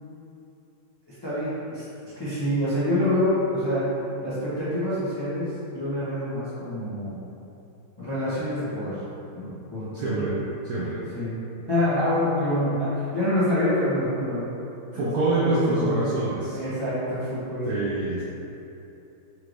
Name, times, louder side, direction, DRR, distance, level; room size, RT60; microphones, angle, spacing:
voice 1, 1.1-3.8 4.2-7.2 8.0-9.0 9.3-10.4 11.1-11.4 11.7-14.5 14.9-16.0 16.5-17.7, left 1 dB, 40° left, -13 dB, 0.3 m, -27 dB
voice 2, 9.9-10.3 10.6-11.0 14.9-16.6 17.7-18.2, right 2 dB, 75° right, -9 dB, 0.9 m, -25 dB
4.5 x 3.1 x 2.5 m, 2.8 s
omnidirectional pair, 2.3 m